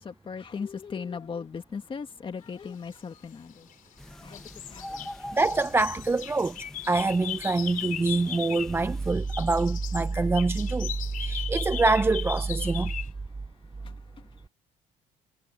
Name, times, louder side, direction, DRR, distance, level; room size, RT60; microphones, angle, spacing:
voice 1, 0.0-3.7 4.2-4.4 4.7-5.1 13.8-13.9, left 6 dB, 30° left, 2.0 m, -38 dB
sound 1, 3.2-4.0 4.3-8.8 9.1-13.1, left 10 dB, 55° left, 3.9 m, -38 dB
sound 2, 4.0-9.1, left 1 dB, 5° left, 1.2 m, -43 dB
voice 2, 5.3-10.9 11.2-12.9, right 3 dB, 15° right, 0.5 m, -25 dB
cardioid pair, 100°, 16 cm